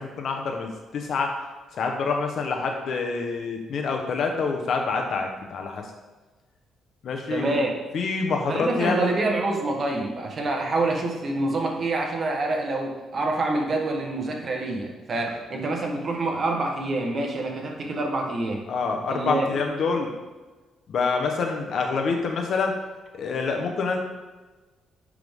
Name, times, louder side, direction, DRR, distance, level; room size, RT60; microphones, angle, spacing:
voice 1, 0.0-1.3 1.8-5.8 7.0-7.5 7.9-9.1 18.7-20.1 20.9-22.7 23.1-24.0, left 4 dB, 60° left, 3 dB, 0.9 m, -26 dB
voice 2, 7.3-7.8 8.5-18.6 19.1-19.5, right 2 dB, 45° right, 2 dB, 1.2 m, -26 dB
9.6 x 3.7 x 3.6 m, 1.2 s
cardioid pair, 90°, 0 cm